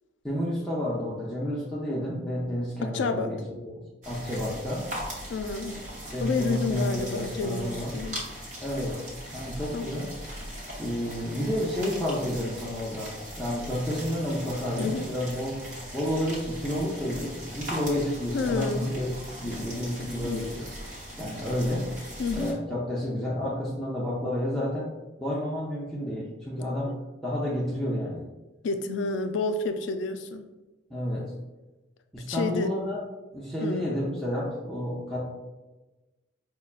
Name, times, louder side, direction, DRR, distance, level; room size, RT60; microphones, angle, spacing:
voice 1, 0.2-4.9 6.1-7.9 8.6-9.1 9.3-10.2 10.8-15.6 15.9-19.1 19.4-20.7 21.2-21.9 22.3-24.9 25.2-26.9 27.2-28.2 30.9-31.3 32.1-33.0 33.3-35.2, equal, ahead, -8 dB, 0.5 m, -30 dB
voice 2, 2.8-3.3 5.3-5.8 6.2-8.2 9.7-9.9 14.8-15.1 18.3-19.2 20.2-20.5 22.2-22.6 26.6-26.9 28.6-30.5 32.3-32.7 33.6-33.9, left 4 dB, 75° left, 8 dB, 0.3 m, -30 dB
sound 1, 4.0-22.5, equal, 40° right, 0.9 m, -39 dB
5.3 x 2.2 x 2.4 m, 1.1 s
head